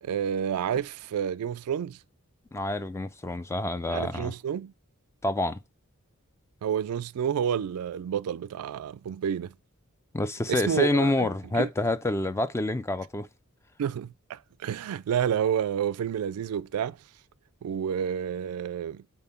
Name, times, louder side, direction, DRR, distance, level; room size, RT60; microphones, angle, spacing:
voice 1, 0.0-2.0 3.9-4.7 6.6-9.5 10.5-11.3 11.5-11.7 13.8-17.0 17.6-19.0, right 8 dB, 80° right, 0.3 m, -29 dB
Fireworks, 0.7-3.8, left 1 dB, 85° left, 1.9 m, -56 dB
voice 2, 2.5-4.3 5.2-5.6 10.1-13.3, left 2 dB, 10° left, 0.4 m, -27 dB
5.5 x 4.2 x 5.6 m
head